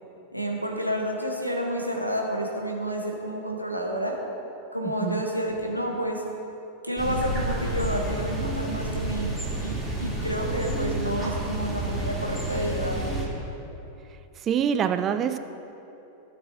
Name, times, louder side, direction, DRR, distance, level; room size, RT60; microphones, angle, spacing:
voice 1, 0.3-4.2 4.7-6.2 6.8-13.2, equal, 90° left, 1 dB, 1.1 m, -30 dB
voice 2, 4.8-5.2 14.4-15.4, right 8 dB, 30° right, 9 dB, 0.3 m, -25 dB
sound 1, 7.0-13.3, right 1 dB, 10° left, 2.1 m, -30 dB
15.0 x 6.7 x 2.8 m, 3.0 s
figure-of-eight pair, 90°, 0 cm